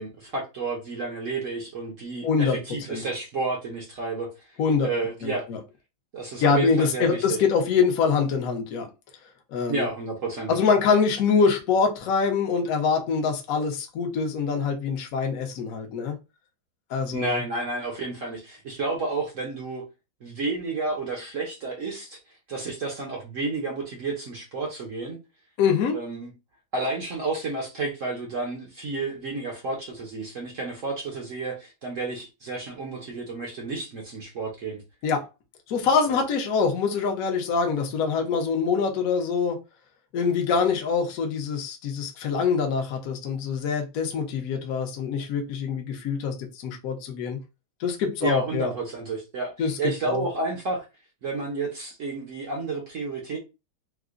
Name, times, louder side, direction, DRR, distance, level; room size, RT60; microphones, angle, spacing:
voice 1, 0.0-4.3 4.8-5.4 6.1-7.4 9.7-10.6 17.1-19.8 20.2-22.2 22.5-25.2 25.9-26.3 26.7-34.8 36.1-36.2 48.2-49.5 49.8-50.8 51.2-53.4, right 3 dB, 60° right, 0.8 m, -31 dB
voice 2, 2.2-2.6 2.9-3.0 4.6-4.9 5.2-5.6 6.4-8.9 9.5-9.9 10.5-16.1 16.9-17.4 25.6-26.0 35.0-35.2 35.7-39.6 40.1-47.4 47.8-48.7 49.6-49.7 50.1-50.2, left 5 dB, 60° left, 0.9 m, -24 dB
4.7 x 2.1 x 2.4 m
omnidirectional pair, 2.2 m